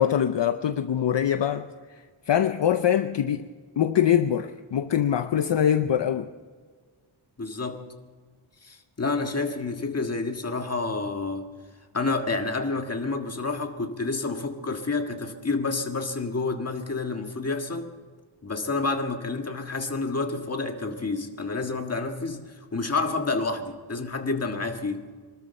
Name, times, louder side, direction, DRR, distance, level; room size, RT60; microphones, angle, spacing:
voice 1, 0.0-3.5 3.8-6.3, left 9 dB, 60° left, 9 dB, 0.7 m, -23 dB
voice 2, 7.4-7.8 8.6-11.5 11.9-17.9 18.4-25.0, left 3 dB, 30° left, 4 dB, 1.7 m, -29 dB
24.5 x 13.0 x 4.4 m, 1.6 s
wide cardioid pair, 115°, 50 cm